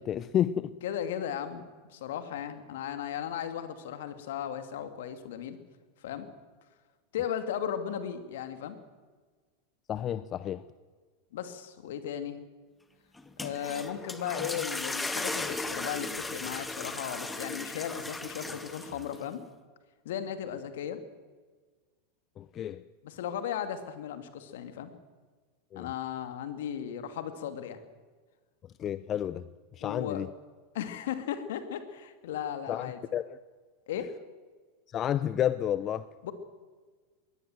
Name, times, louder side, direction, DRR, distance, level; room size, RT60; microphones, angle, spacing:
voice 1, 0.0-0.7 9.9-10.6 22.4-22.9 25.7-25.9 28.8-29.5 29.8-30.3 32.7-33.4 34.9-36.1, left 10 dB, 35° left, 15 dB, 0.7 m, -30 dB
voice 2, 0.8-5.6 6.0-6.3 7.1-8.8 11.3-12.4 13.4-19.4 20.0-21.0 23.0-24.9 25.8-27.8 29.8-30.3 30.7-33.0 33.9-34.1 36.2-36.3, left 9 dB, 70° left, 9 dB, 2.5 m, -36 dB
sound 1, 13.2-19.2, left 2 dB, 10° left, 2.0 m, -36 dB
22.0 x 18.0 x 7.9 m, 1.4 s
hypercardioid pair, 95°, 0 cm